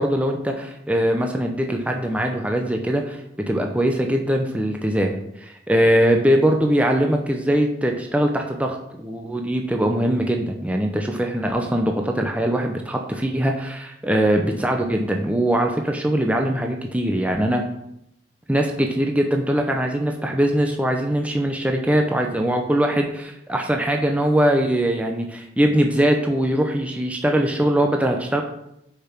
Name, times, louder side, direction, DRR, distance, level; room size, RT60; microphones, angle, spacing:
voice 1, 0.0-3.2 3.5-17.6 18.5-28.4, right 1 dB, 10° right, 2 dB, 0.8 m, -21 dB
7.0 x 5.9 x 6.0 m, 0.78 s
head